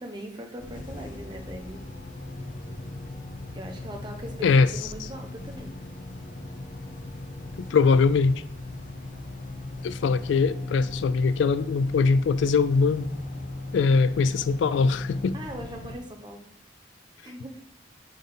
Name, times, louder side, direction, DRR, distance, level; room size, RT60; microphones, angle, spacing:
voice 1, 0.0-1.8 3.5-5.7 15.3-16.4 17.2-17.6, right 1 dB, 25° right, 0.8 m, -40 dB
sound 1, 0.6-16.0, left 2 dB, 45° left, 0.7 m, -37 dB
voice 2, 7.6-8.4 9.8-13.1 13.7-15.3, left 4 dB, 75° left, 0.3 m, -22 dB
5.1 x 4.0 x 5.4 m
head